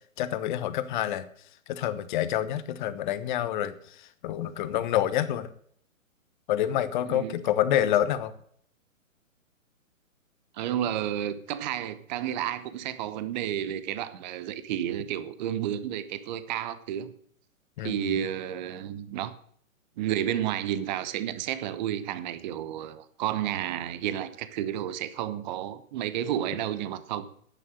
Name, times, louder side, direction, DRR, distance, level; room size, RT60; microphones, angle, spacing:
voice 1, 0.2-1.3 1.7-3.7 4.2-5.5 6.5-8.3 17.8-18.2, left 11 dB, 35° left, 13 dB, 1.1 m, -27 dB
voice 2, 7.0-7.4 10.5-17.1 17.8-19.3 20.0-27.4, right 11 dB, 35° right, 13 dB, 1.0 m, -31 dB
11.0 x 9.2 x 6.4 m, 0.63 s
hypercardioid pair, 130°, 41 cm